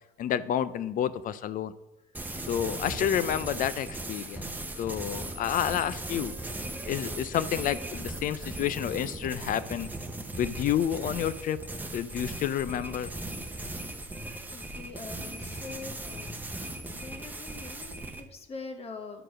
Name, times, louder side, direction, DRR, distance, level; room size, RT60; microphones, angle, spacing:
voice 1, 0.2-1.7 2.5-4.5 4.8-6.4 6.8-9.9 10.4-11.6 11.9-13.1, left 10 dB, 55° left, 15 dB, 0.5 m, -29 dB
sound 1, 2.1-18.2, right 2 dB, 10° right, 0.8 m, -38 dB
voice 2, 14.5-16.4 16.9-19.2, left 4 dB, 35° left, 5 dB, 1.2 m, -43 dB
10.0 x 4.5 x 6.2 m, 1.0 s
cardioid pair, 110°, 17 cm